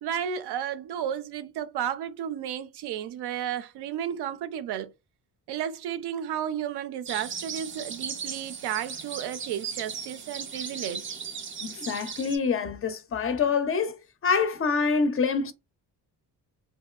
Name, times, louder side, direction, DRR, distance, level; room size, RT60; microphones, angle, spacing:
voice 1, 0.0-4.9 5.5-11.1, right 9 dB, 85° right, 0.5 m, -33 dB
sound 1, 7.1-12.4, right 6 dB, 30° right, 0.4 m, -37 dB
voice 2, 11.6-14.0 14.2-15.5, left 5 dB, 35° left, 0.4 m, -26 dB
2.9 x 2.7 x 2.3 m
cardioid pair, 135°, 39 cm